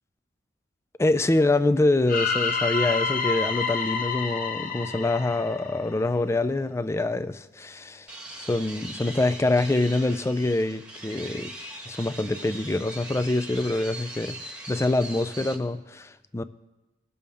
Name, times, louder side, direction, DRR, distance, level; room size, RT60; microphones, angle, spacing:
voice 1, 1.0-8.1 8.4-11.5 11.9-16.4, left 2 dB, 15° left, 13 dB, 0.3 m, -25 dB
sound 1, 2.1-6.1, left 5 dB, 45° left, 0.8 m, -28 dB
sound 2, 8.1-15.5, right 1 dB, 5° right, 1.2 m, -40 dB
20.5 x 6.9 x 3.5 m, 1.1 s
head